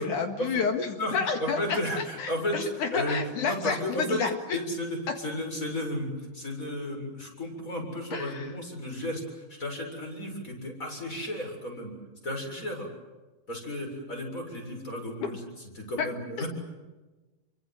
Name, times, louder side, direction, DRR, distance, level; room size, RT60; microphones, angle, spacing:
voice 1, 0.0-4.6 8.1-8.5 15.2-15.3 16.0-16.1 16.4-16.5, left 5 dB, 65° left, 5 dB, 3.3 m, -30 dB
voice 2, 1.0-2.6 2.9-4.2 4.5-11.9 12.2-12.9 13.5-15.4 15.8-16.5, left 1 dB, 20° left, 2 dB, 7.6 m, -33 dB
28.5 x 24.5 x 7.9 m, 1.2 s
omnidirectional pair, 3.9 m